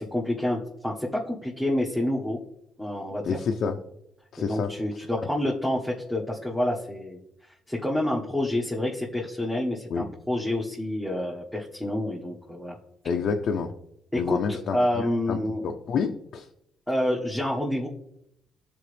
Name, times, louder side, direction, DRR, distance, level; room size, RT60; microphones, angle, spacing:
voice 1, 0.0-2.4 2.8-3.4 4.4-7.2 7.7-12.8 14.1-15.6 16.9-17.9, left 1 dB, 5° right, -5 dB, 1.4 m, -28 dB
voice 2, 3.2-3.8 4.3-4.7 5.2-5.3 9.9-10.1 13.0-13.7 14.1-16.5, left 6 dB, 65° left, 3 dB, 0.6 m, -29 dB
12.5 x 4.3 x 3.4 m, 0.77 s
cardioid pair, 90°, 0 cm